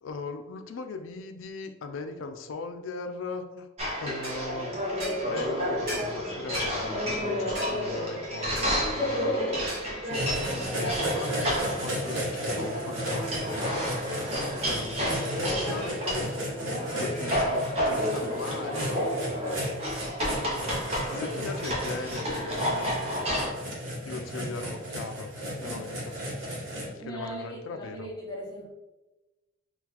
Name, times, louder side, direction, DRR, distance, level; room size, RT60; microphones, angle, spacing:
voice 1, 0.0-3.7 4.0-4.9 5.2-9.4 10.0-13.9 14.5-16.5 16.9-19.0 21.1-22.9 24.0-25.3 25.6-26.2 26.9-28.1, left 4 dB, 80° left, 7 dB, 0.4 m, -39 dB
sound 1, 3.8-23.5, equal, 30° right, 0.7 m, -30 dB
sound 2, 4.2-4.4 5.0-5.2 5.9-6.1 6.5-6.7 7.5-7.8 8.6-8.8 9.7-9.9, right 1 dB, 50° right, 1.2 m, -37 dB
sound 3, 10.1-26.8, equal, 80° right, 1.0 m, -34 dB
voice 2, 14.2-14.7 17.8-18.4 21.1-21.6 25.6-25.8 27.0-28.7, equal, 20° left, -4 dB, 0.8 m, -41 dB
3.7 x 2.3 x 2.8 m, 1.1 s
head